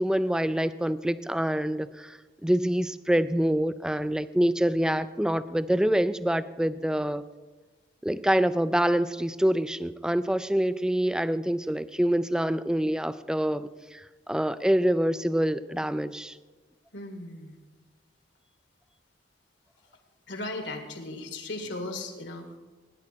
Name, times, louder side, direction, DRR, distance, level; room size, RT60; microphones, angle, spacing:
voice 1, 0.0-7.2 8.0-16.4, right 1 dB, 5° right, 14 dB, 0.3 m, -26 dB
voice 2, 16.9-17.6 20.3-22.6, left 2 dB, 75° left, 5 dB, 2.0 m, -37 dB
19.5 x 9.8 x 4.5 m, 1.3 s
head